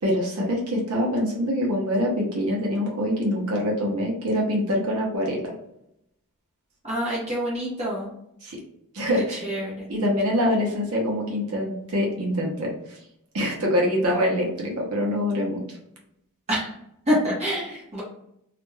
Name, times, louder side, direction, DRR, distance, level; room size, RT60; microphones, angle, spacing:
voice 1, 0.0-5.5 8.4-8.6 8.9-9.5 9.9-13.0 13.3-15.8, equal, 75° right, -2 dB, 0.7 m, -25 dB
voice 2, 6.8-8.1 9.4-9.9 16.5-16.7 17.1-18.0, equal, 30° right, -6 dB, 0.8 m, -26 dB
2.4 x 2.2 x 3.1 m, 0.79 s
head